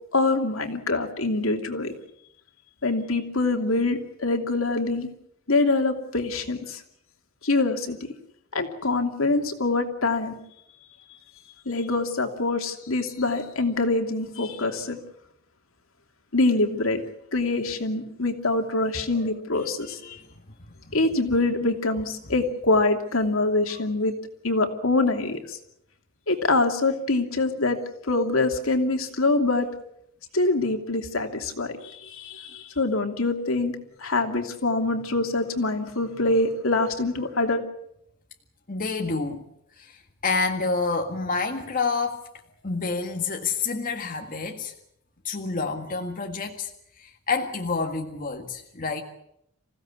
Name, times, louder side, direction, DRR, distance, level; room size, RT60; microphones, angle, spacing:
voice 1, 0.1-1.9 2.8-5.1 5.5-6.8 7.4-8.0 8.5-10.4 11.6-15.0 16.3-17.0 17.3-20.0 20.9-24.1 24.4-25.6 26.3-27.8 28.0-29.7 30.3-37.6, left 2 dB, 75° left, 4 dB, 2.8 m, -24 dB
voice 2, 19.5-20.3 20.8-21.0 38.7-39.5 39.8-42.2 42.6-44.7 45.2-46.7 47.0-49.0, left 4 dB, 40° left, 2 dB, 1.8 m, -29 dB
27.0 x 16.0 x 8.5 m, 0.78 s
head